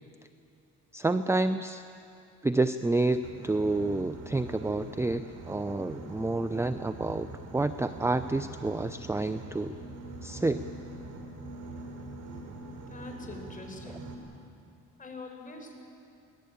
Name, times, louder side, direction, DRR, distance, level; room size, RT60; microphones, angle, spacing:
voice 1, 0.9-1.8 2.4-9.7 10.2-10.6, right 2 dB, 10° right, 11 dB, 0.6 m, -29 dB
Boat Water vehicle, 3.1-14.1, right 2 dB, 85° right, 3.6 m, -43 dB
voice 2, 12.7-14.1 15.0-15.8, left 3 dB, 25° left, 1 dB, 5.3 m, -44 dB
24.0 x 18.5 x 8.8 m, 2.5 s
cardioid pair, 90°, 30 cm